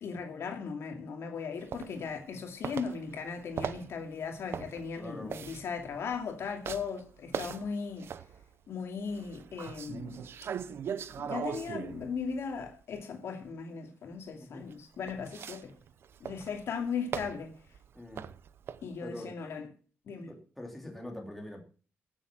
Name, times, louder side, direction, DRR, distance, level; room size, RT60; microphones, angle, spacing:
voice 1, 0.0-8.1 8.7-10.2 11.2-15.7 16.2-17.5 18.8-19.7 20.1-20.3, left 5 dB, 65° left, 2.5 m, -37 dB
sound 1, 1.7-2.4 2.6-8.5 9.1-13.0 14.7-18.9, right 8 dB, 60° right, 0.8 m, -40 dB
voice 2, 5.0-5.4 14.4-14.7 17.9-18.3 19.0-19.3 20.2-21.6, left 1 dB, 5° left, 3.0 m, -43 dB
16.5 x 7.5 x 6.1 m
wide cardioid pair, 170°, 5 cm